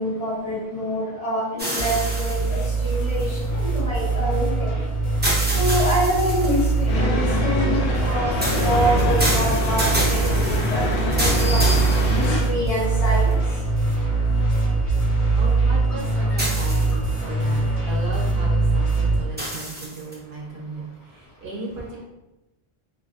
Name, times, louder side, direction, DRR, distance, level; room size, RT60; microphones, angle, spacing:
voice 1, 0.0-4.7 5.5-10.8 11.1-11.7 12.2-13.4, equal, 40° left, -6 dB, 0.9 m, -26 dB
sound 1, 1.6-3.8 5.2-6.8 8.4-12.7 13.3-13.4 16.4-17.2 19.4-20.1, right 1 dB, 15° right, 0.4 m, -28 dB
sound 2, 1.8-19.2, right 3 dB, 70° left, 1.2 m, -22 dB
sound 3, 6.9-12.4, left 2 dB, 85° left, 0.9 m, -25 dB
voice 2, 15.3-22.0, right 2 dB, 65° right, -3 dB, 0.7 m, -36 dB
2.4 x 2.3 x 2.4 m, 1.0 s
omnidirectional pair, 1.0 m